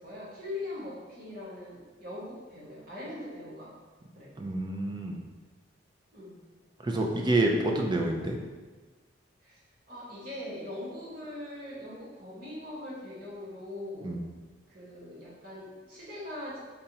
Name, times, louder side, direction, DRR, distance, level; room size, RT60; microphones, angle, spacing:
voice 1, 0.0-3.7 4.1-4.3 6.1-6.4 9.4-9.6 9.9-14.1 14.7-16.6, left 1 dB, 50° right, -8 dB, 1.3 m, -41 dB
voice 2, 4.4-5.2 6.8-8.4 14.0-14.2, right 2 dB, 25° right, 2 dB, 0.4 m, -28 dB
3.9 x 3.5 x 2.8 m, 1.3 s
head